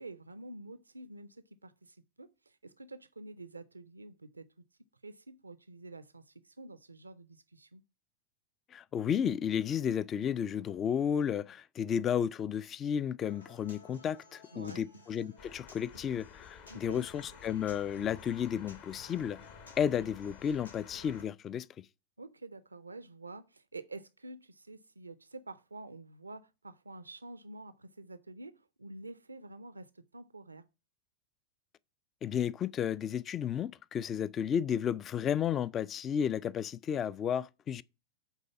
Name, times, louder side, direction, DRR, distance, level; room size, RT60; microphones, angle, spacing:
voice 1, 0.0-4.5 5.0-7.8 14.5-14.9 16.7-17.0 22.2-30.6, right 2 dB, 80° right, 0.4 m, -48 dB
voice 2, 8.7-19.4 19.8-21.7 32.2-37.8, left 8 dB, 25° left, 0.3 m, -32 dB
Human voice / Acoustic guitar, 13.2-21.2, left 1 dB, 75° left, 1.2 m, -57 dB
sound 1, 15.4-21.3, left 7 dB, 45° left, 1.0 m, -52 dB
8.1 x 4.0 x 6.9 m
figure-of-eight pair, 90°, 0 cm